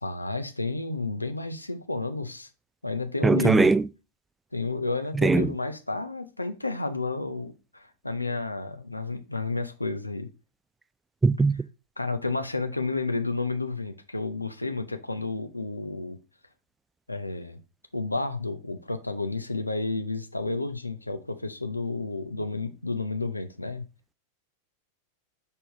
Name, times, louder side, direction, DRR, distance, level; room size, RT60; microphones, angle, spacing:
voice 1, 0.0-2.5 2.8-3.7 4.5-10.3 12.0-16.2 17.1-17.6 17.9-23.8, left 3 dB, 85° left, 0.8 m, -31 dB
voice 2, 3.2-3.8 5.2-5.5 11.2-11.6, right 3 dB, 10° right, 0.3 m, -20 dB
5.4 x 4.3 x 4.6 m
figure-of-eight pair, 90°, 0 cm